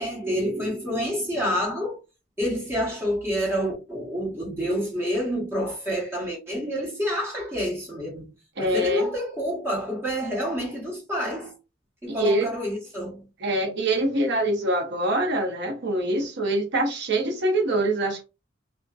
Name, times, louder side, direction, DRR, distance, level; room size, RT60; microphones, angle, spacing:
voice 1, 0.0-2.0 2.4-8.3 8.6-11.5 12.0-13.3, equal, 15° right, 1.1 m, -28 dB
voice 2, 8.6-9.1 12.1-12.5 13.4-18.2, right 1 dB, 60° right, 0.7 m, -24 dB
2.5 x 2.1 x 2.4 m
head